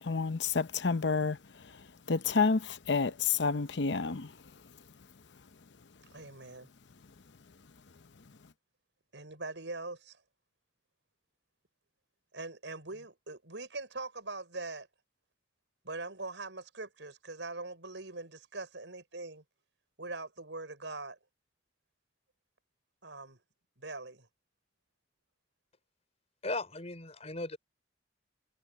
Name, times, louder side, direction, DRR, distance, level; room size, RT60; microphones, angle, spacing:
voice 1, 0.0-4.3, left 4 dB, 70° left, 0.8 m, -30 dB
voice 2, 6.1-6.7 9.1-10.2 12.3-14.9 15.8-19.4 20.0-21.2 23.0-23.4 23.8-24.3, right 3 dB, 80° right, 5.8 m, -42 dB
voice 3, 26.4-27.6, left 2 dB, 35° left, 4.7 m, -37 dB
head